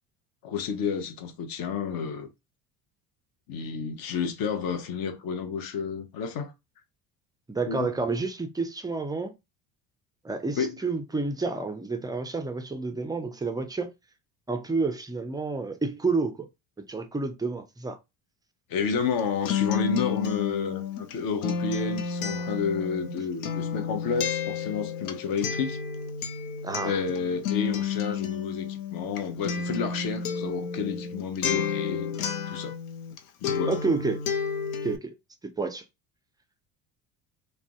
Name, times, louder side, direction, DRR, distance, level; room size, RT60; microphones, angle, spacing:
voice 1, 0.4-2.3 3.5-6.5 7.7-7.9 10.6-10.8 18.7-25.8 26.8-32.7 33.4-33.8, left 6 dB, 55° left, 0.8 m, -30 dB
voice 2, 7.5-9.3 10.2-13.9 14.5-16.5 16.8-18.0 26.6-27.0 33.7-34.2 34.8-35.1 35.4-35.8, right 3 dB, 10° right, 0.3 m, -29 dB
Acoustic guitar, 19.0-33.2 33.4-35.0, left 7 dB, 80° left, 0.6 m, -31 dB
2.5 x 2.1 x 3.5 m
hypercardioid pair, 70°, 44 cm